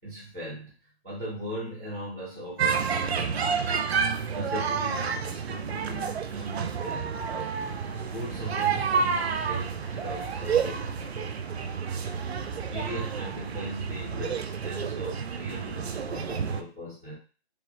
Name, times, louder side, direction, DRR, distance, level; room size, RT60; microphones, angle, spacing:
voice 1, 0.0-0.7 1.0-7.8 8.1-11.4 12.4-17.1, equal, 5° left, -16 dB, 0.6 m, -39 dB
sound 1, 2.6-16.6, right 6 dB, 75° right, 0.5 m, -30 dB
sound 2, 7.5-12.6, left 2 dB, 65° left, 0.7 m, -50 dB
3.1 x 2.1 x 3.0 m, 0.36 s
hypercardioid pair, 170°, 32 cm